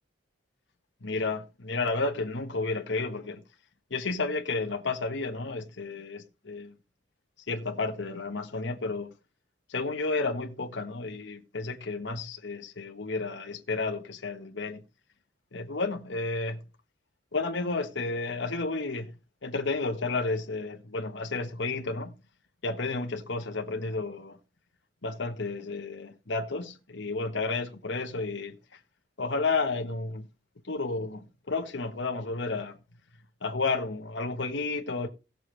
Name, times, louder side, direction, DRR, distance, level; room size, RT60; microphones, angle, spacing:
voice 1, 1.0-3.4 3.9-6.7 7.5-9.1 9.7-14.8 15.5-16.6 17.3-19.1 19.4-22.2 22.6-24.4 25.0-28.6 29.2-30.3 30.7-32.8 33.4-35.1, left 3 dB, 60° left, 1.3 m, -32 dB
17.5 x 6.8 x 3.3 m
head